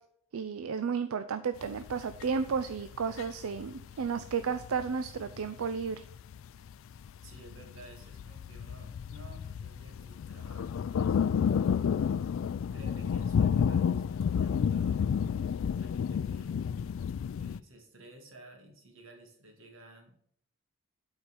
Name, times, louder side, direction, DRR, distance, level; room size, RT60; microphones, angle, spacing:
voice 1, 0.3-6.0, right 6 dB, 85° right, 11 dB, 0.5 m, -33 dB
sound 1, 1.6-17.6, left 7 dB, 65° left, 0.3 m, -31 dB
voice 2, 7.1-12.2 12.7-16.6 17.0-20.3, right 1 dB, 70° right, 2 dB, 2.1 m, -54 dB
8.6 x 4.5 x 5.3 m, 0.68 s
head